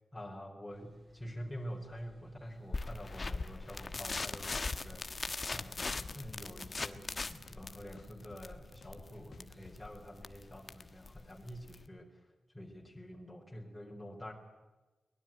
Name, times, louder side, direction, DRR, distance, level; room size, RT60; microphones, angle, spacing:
voice 1, 0.1-5.0 5.5-12.3 12.5-14.3, equal, 10° left, 0 dB, 4.1 m, -47 dB
sound 1, 0.7-10.2, right 1 dB, 15° right, 4.5 m, -61 dB
sound 2, 2.7-11.9, left 3 dB, 30° left, 1.3 m, -40 dB
sound 3, 4.3-4.4 4.8-5.7 6.1-7.2 7.5-9.8, left 5 dB, 50° left, 1.0 m, -57 dB
23.0 x 20.5 x 9.2 m, 1.1 s
wide cardioid pair, 160°, 0 cm